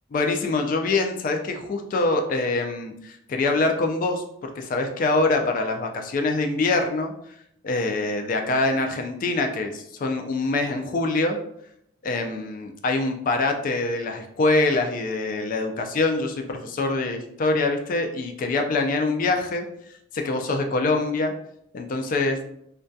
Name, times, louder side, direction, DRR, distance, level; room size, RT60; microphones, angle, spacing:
voice 1, 0.1-7.1 7.6-11.4 12.0-19.6 20.1-21.3 21.7-22.4, left 3 dB, 45° left, 4 dB, 0.3 m, -24 dB
2.2 x 2.2 x 2.6 m, 0.73 s
head